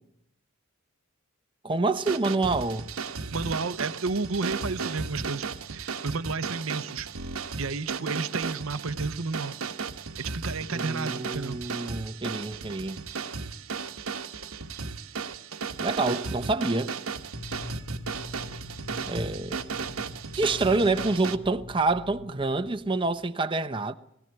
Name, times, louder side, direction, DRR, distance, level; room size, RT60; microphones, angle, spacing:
voice 1, 1.6-2.9 10.7-13.0 15.8-16.9 19.1-19.6 20.3-23.9, right 3 dB, 25° right, 0.8 m, -27 dB
sound 1, 1.9-21.4, right 5 dB, 85° right, 1.3 m, -35 dB
voice 2, 3.3-5.5 5.7-7.1 7.6-9.6 10.2-11.6, right 4 dB, 70° right, 0.9 m, -32 dB
sound 2, 17.3-23.3, left 2 dB, 70° left, 1.7 m, -43 dB
21.5 x 15.5 x 9.0 m
head